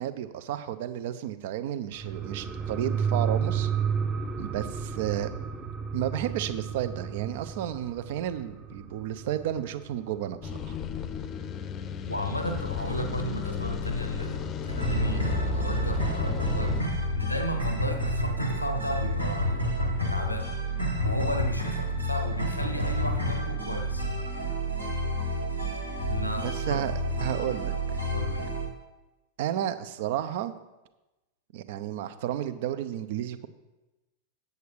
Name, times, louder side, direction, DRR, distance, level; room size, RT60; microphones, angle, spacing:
voice 1, 0.0-3.7 4.4-5.3 5.9-10.7 26.4-28.0 29.4-30.5 31.5-33.5, right 11 dB, 50° right, 12 dB, 0.6 m, -32 dB
sound 1, 1.9-11.0 11.4-11.5, right 7 dB, 25° right, 0.9 m, -32 dB
sound 2, 10.4-16.8, left 5 dB, 30° left, 0.7 m, -33 dB
voice 2, 12.1-16.7 17.1-19.6 20.1-20.5 21.0-24.0 26.1-26.8 28.1-28.4, left 1 dB, 85° left, 6 dB, 1.0 m, -33 dB
sound 3, 14.7-28.7, equal, 90° right, 1.9 m, -30 dB
8.6 x 8.0 x 4.8 m, 1.0 s
figure-of-eight pair, 90°, 0 cm